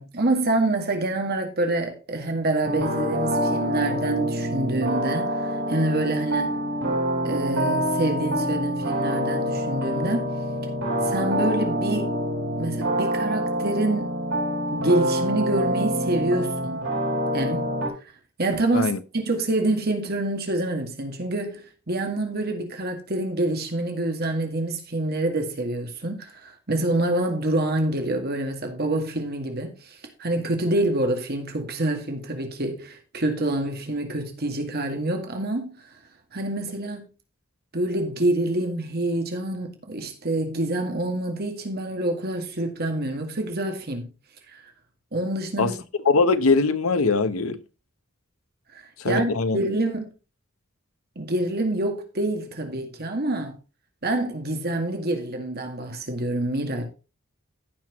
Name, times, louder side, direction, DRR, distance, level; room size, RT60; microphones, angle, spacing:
voice 1, 0.0-6.6 7.2-10.3 11.0-12.1 12.6-14.1 14.7-16.9 17.3-17.7 18.4-35.7 36.3-37.1 37.7-44.1 45.1-45.8 48.7-50.1 51.2-53.5 54.0-56.9, right 2 dB, 50° right, 2.0 m, -26 dB
sound 1, 2.6-17.9, equal, 75° right, 5.5 m, -26 dB
voice 2, 46.0-47.6 49.0-49.6, left 3 dB, 85° left, 0.9 m, -21 dB
15.0 x 6.0 x 3.0 m
head